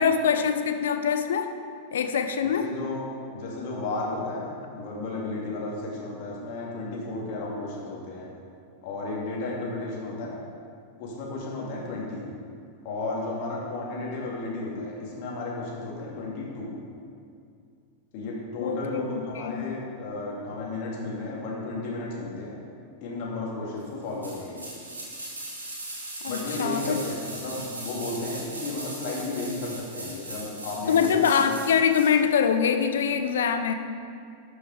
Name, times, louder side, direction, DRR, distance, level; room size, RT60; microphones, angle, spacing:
voice 1, 0.0-1.5 1.9-2.7 18.6-19.7 26.2-27.0 30.9-33.7, left 7 dB, 60° left, 8 dB, 0.6 m, -24 dB
voice 2, 2.4-3.0 3.3-8.3 8.8-10.4 11.0-12.2 12.8-16.7 18.1-22.6 23.0-24.7 26.3-31.3, left 2 dB, 45° left, -3 dB, 2.5 m, -33 dB
sound 1, 24.2-32.1 32.4-32.5, right 2 dB, 75° right, 2.1 m, -39 dB
12.0 x 6.4 x 4.9 m, 2.4 s
figure-of-eight pair, 90°, 0 cm